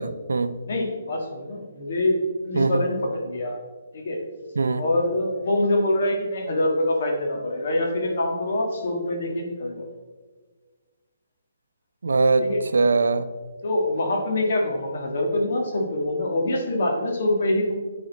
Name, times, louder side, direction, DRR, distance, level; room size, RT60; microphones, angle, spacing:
voice 1, 0.0-0.6 2.5-2.8 4.6-4.8 12.0-13.3, right 3 dB, 90° right, 12 dB, 0.5 m, -22 dB
voice 2, 0.6-2.2 2.5-3.5 3.9-4.2 4.8-9.9 12.4-12.6 13.6-17.7, left 1 dB, 55° left, 1 dB, 1.5 m, -25 dB
9.0 x 4.1 x 4.0 m, 1.4 s
hypercardioid pair, 165°, 0 cm